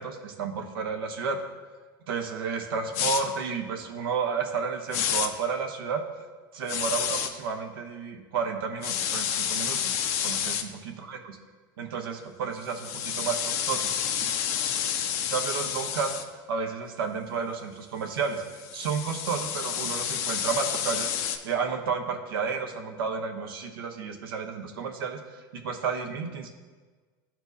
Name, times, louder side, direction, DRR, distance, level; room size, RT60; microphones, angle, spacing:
voice 1, 0.0-1.4 2.1-6.0 6.5-9.9 10.2-11.4 11.8-14.3 15.3-16.1 16.5-26.5, right 5 dB, 85° right, 4 dB, 0.9 m, -32 dB
sound 1, 2.9-3.2 4.9-5.3 6.7-7.3 8.8-10.6 12.7-16.2 18.4-21.4, left 9 dB, 60° left, 0.7 m, -29 dB
12.5 x 4.4 x 2.7 m, 1.4 s
hypercardioid pair, 100°, 12 cm